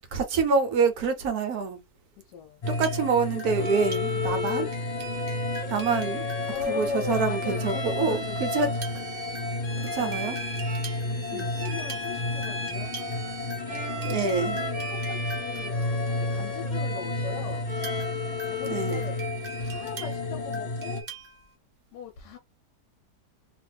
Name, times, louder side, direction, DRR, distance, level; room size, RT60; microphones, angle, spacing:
voice 1, 0.1-1.8 2.7-4.7 5.7-6.2 6.7-8.7 9.9-10.4 11.3-11.5 14.0-14.6 18.7-19.0, right 5 dB, 70° right, 1.1 m, -26 dB
voice 2, 2.2-2.7 5.9-6.0 6.4-8.9 9.7-10.4 10.8-12.9 14.0-15.8 16.1-17.8 18.5-19.2 19.6-21.1 21.9-22.4, left 6 dB, 85° left, 1.2 m, -38 dB
sound 1, 2.6-21.0, left 2 dB, 60° left, 0.4 m, -32 dB
sound 2, 2.7-7.4 8.7-16.5 17.7-21.5, right 4 dB, 40° right, 1.0 m, -43 dB
Bowed string instrument, 3.6-19.3, left 3 dB, 25° right, 1.3 m, -36 dB
2.8 x 2.5 x 3.2 m
omnidirectional pair, 1.8 m